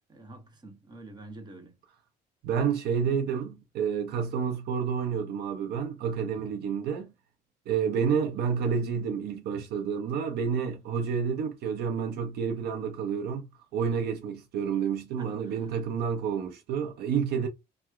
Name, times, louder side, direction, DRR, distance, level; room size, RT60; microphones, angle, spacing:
voice 1, 0.1-1.7 15.2-15.6, right 2 dB, 25° right, 1.0 m, -47 dB
voice 2, 2.4-7.1 7.7-17.5, right 7 dB, 70° right, 0.6 m, -29 dB
2.9 x 2.1 x 3.4 m
cardioid pair, 110°, 17 cm